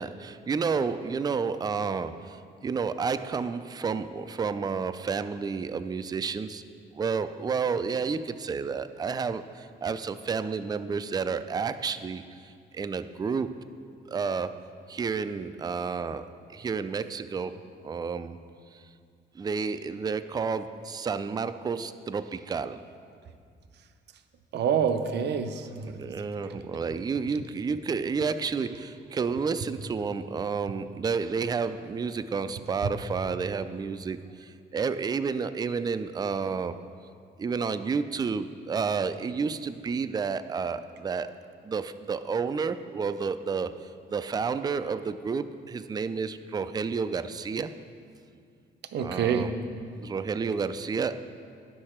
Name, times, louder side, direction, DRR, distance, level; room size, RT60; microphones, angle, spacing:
voice 1, 0.0-6.6 6.9-13.5 14.1-14.6 14.9-17.6 17.8-18.4 19.4-22.9 25.9-36.8 37.4-41.3 41.6-43.8 44.1-47.7 49.0-49.5 49.9-51.2, right 5 dB, 20° right, 12 dB, 0.3 m, -30 dB
voice 2, 24.5-26.0 48.9-49.5, right 7 dB, 60° right, 8 dB, 0.6 m, -27 dB
9.7 x 6.5 x 4.4 m, 2.3 s
cardioid pair, 90°, 20 cm